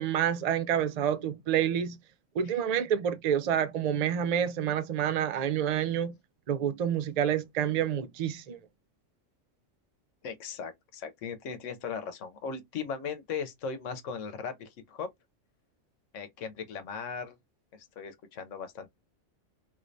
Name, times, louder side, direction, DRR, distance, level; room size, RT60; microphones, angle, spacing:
voice 1, 0.0-2.0 2.3-6.1 6.5-8.6, right 9 dB, 60° right, 0.4 m, -28 dB
voice 2, 10.2-15.1 16.1-17.4 17.7-18.9, left 6 dB, 75° left, 1.1 m, -38 dB
3.3 x 3.1 x 2.6 m
omnidirectional pair, 1.3 m